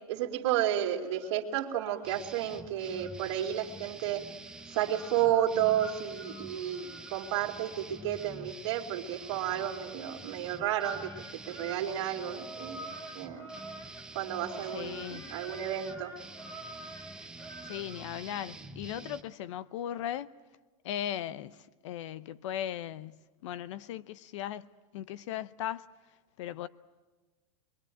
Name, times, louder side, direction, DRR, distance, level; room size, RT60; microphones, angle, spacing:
voice 1, 0.1-4.2 4.7-11.1 11.5-12.9 13.1-13.5 14.1-16.1, right 11 dB, 50° right, 2.6 m, -32 dB
sound 1, 0.8-2.3 2.7-18.1, right 1 dB, 15° left, 2.1 m, -49 dB
sound 2, 2.0-19.2, right 3 dB, 5° right, 0.9 m, -47 dB
voice 2, 14.7-15.3 17.7-20.3 20.8-24.7 24.9-25.9 26.4-26.7, left 11 dB, 60° left, 0.7 m, -38 dB
26.5 x 22.5 x 9.1 m
supercardioid pair, 165°, 18 cm